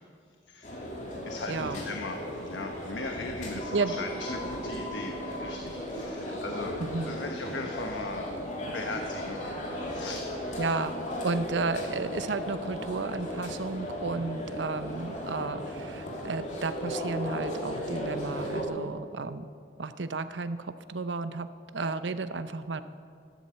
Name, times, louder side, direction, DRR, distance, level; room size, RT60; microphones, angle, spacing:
voice 1, 0.5-0.9 1.2-6.7 7.0-8.3 8.6-9.4 9.9-10.3 10.7-11.0, left 2 dB, 85° left, 3 dB, 1.2 m, -38 dB
sound 1, 0.6-18.6, equal, 45° left, 3.1 m, -36 dB
voice 2, 1.5-1.8 3.7-3.9 6.3-6.4 6.8-7.2 10.6-10.9 11.2-19.5 19.8-21.5 21.7-22.8, right 3 dB, 90° right, 12 dB, 0.8 m, -33 dB
14.0 x 12.5 x 7.7 m, 2.3 s
head